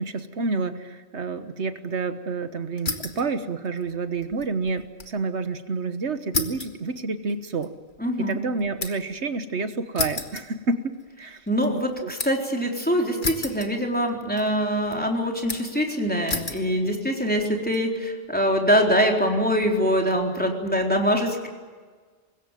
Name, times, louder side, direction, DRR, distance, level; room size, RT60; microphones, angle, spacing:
voice 1, 0.0-7.7 8.2-10.9 11.2-11.4 11.7-12.1, right 4 dB, 75° right, 9 dB, 1.6 m, -29 dB
sound 1, 2.8-3.3 3.6-5.2 5.5-5.6 6.3-9.2 10.0-11.1 11.5-12.5 13.2-14.1 14.4-15.0 15.5-15.8 16.3-16.7 17.3-17.8, left 2 dB, 45° left, 2.1 m, -32 dB
voice 2, 8.0-8.4 11.5-21.5, equal, 10° left, 1 dB, 4.0 m, -23 dB
25.5 x 21.0 x 9.2 m, 1.5 s
omnidirectional pair, 1.1 m